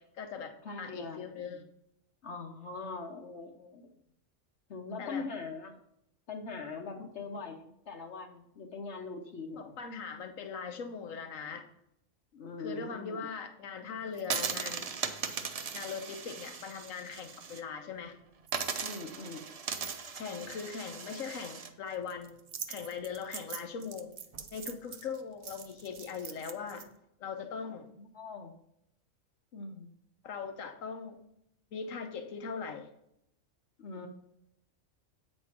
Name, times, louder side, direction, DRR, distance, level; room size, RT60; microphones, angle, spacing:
voice 1, 0.0-1.6 5.0-5.3 7.0-7.1 9.5-11.6 12.6-14.9 15.7-18.2 20.2-22.4 22.7-24.1 24.5-26.9 27.2-27.9 30.2-31.2 31.7-32.9, left 6 dB, 80° left, 6 dB, 1.3 m, -40 dB
voice 2, 0.6-1.6 2.2-3.9 4.7-5.8 6.3-9.8 12.3-13.3 18.8-19.4 27.7-28.6 29.5-29.9 33.8-34.1, left 4 dB, 60° left, 3 dB, 1.1 m, -42 dB
sound 1, 14.2-17.6 17.9-18.0 18.5-26.8, right 6 dB, 55° right, 0.4 m, -39 dB
8.1 x 4.4 x 5.9 m, 0.78 s
omnidirectional pair, 1.4 m